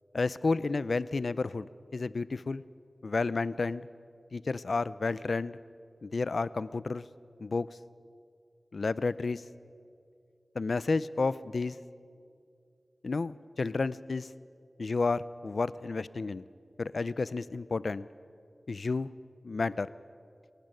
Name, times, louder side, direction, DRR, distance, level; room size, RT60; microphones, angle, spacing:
voice 1, 0.1-1.7 1.9-2.6 3.0-3.9 4.3-5.6 6.0-7.1 7.4-7.7 8.7-9.4 10.5-11.8 13.0-14.3 14.8-16.5 16.8-18.1 18.7-19.1 19.4-19.9, left 3 dB, 85° left, 18 dB, 0.5 m, -31 dB
27.5 x 12.0 x 9.1 m, 2.4 s
wide cardioid pair, 70°, 0 cm